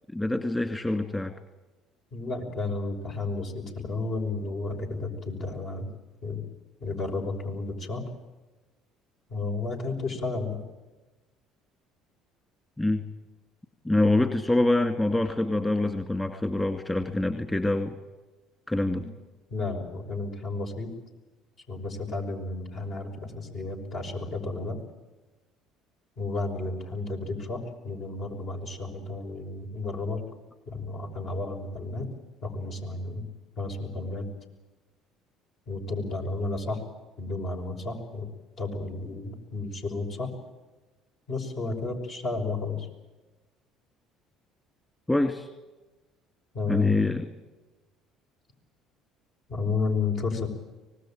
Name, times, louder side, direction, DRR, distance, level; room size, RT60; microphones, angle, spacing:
voice 1, 0.1-1.3 12.8-13.1 13.8-17.9 18.7-19.0 45.1-45.5 46.7-47.3, left 2 dB, 15° left, 7 dB, 2.3 m, -25 dB
voice 2, 2.1-5.9 6.2-6.4 6.8-8.0 9.3-10.6 18.9-19.0 19.5-20.9 21.7-24.8 26.2-30.2 30.7-32.1 32.4-33.3 33.6-34.3 35.7-36.8 37.2-38.3 38.6-40.3 41.3-42.9 46.5-47.0 49.5-50.5, left 3 dB, 55° left, 3 dB, 5.9 m, -32 dB
25.0 x 19.5 x 9.1 m, 1.2 s
supercardioid pair, 75°, 0 cm